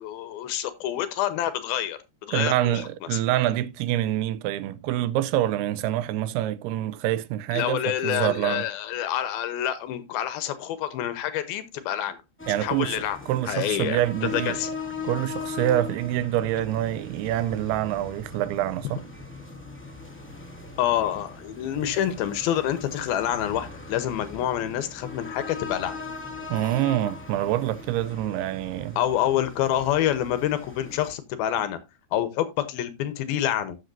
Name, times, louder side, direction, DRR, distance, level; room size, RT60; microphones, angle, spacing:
voice 1, 0.0-2.8 3.1-3.2 7.5-12.2 12.6-13.2 13.5-14.0 14.3-14.7 20.8-26.0 29.0-31.8 32.1-33.8, left 11 dB, 80° left, 2.7 m, -27 dB
voice 2, 2.3-8.7 12.5-13.0 13.3-14.6 15.0-19.0 26.5-29.0, right 13 dB, 85° right, 2.7 m, -26 dB
sound 1, 12.4-31.1, left 4 dB, 10° left, 0.5 m, -39 dB
13.0 x 8.0 x 2.6 m
omnidirectional pair, 4.5 m